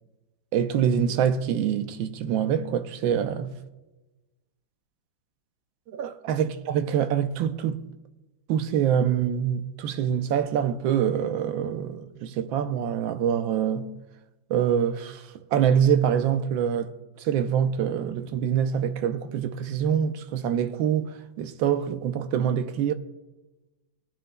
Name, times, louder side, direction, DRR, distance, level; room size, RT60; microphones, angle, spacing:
voice 1, 0.5-3.5 5.9-7.9 8.5-13.9 14.5-16.9 17.2-22.9, right 8 dB, 85° right, 1.4 m, -25 dB
20.5 x 10.5 x 2.2 m
omnidirectional pair, 2.1 m